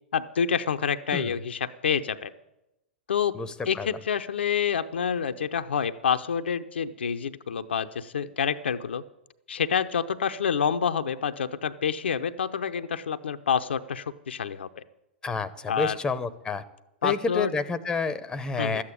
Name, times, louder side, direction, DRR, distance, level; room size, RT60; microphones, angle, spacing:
voice 1, 0.1-2.3 3.1-3.4 3.7-9.0 9.5-14.8 15.7-16.0 17.0-17.5 18.6-18.8, left 7 dB, 70° left, 9 dB, 0.6 m, -28 dB
voice 2, 15.2-16.6 17.0-18.8, left 4 dB, 10° left, 15 dB, 0.8 m, -29 dB
13.0 x 8.6 x 8.8 m, 0.92 s
figure-of-eight pair, 100°, 6 cm